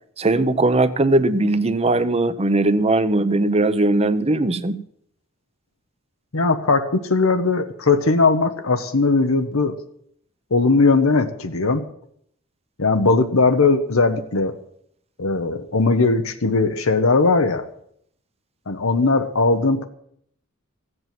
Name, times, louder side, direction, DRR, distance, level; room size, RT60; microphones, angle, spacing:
voice 1, 0.2-4.8, right 2 dB, 30° right, 13 dB, 0.8 m, -19 dB
voice 2, 6.3-9.8 10.5-11.8 12.8-14.6 15.2-17.6 18.7-19.9, left 3 dB, 85° left, 7 dB, 1.1 m, -19 dB
15.0 x 7.9 x 7.7 m, 0.68 s
head